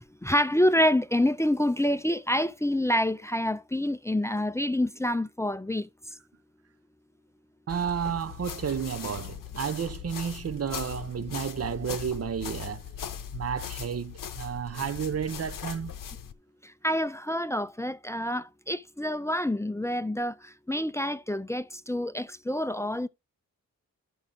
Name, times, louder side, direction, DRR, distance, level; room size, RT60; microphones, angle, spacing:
voice 1, 0.2-5.9 16.8-23.1, left 1 dB, 10° left, 0.4 m, -27 dB
sound 1, 7.7-16.3, left 8 dB, 80° left, 0.7 m, -39 dB
voice 2, 7.7-12.8 13.3-15.9, right 7 dB, 50° right, 0.6 m, -32 dB
12.0 x 5.5 x 3.7 m
cardioid pair, 70°, 32 cm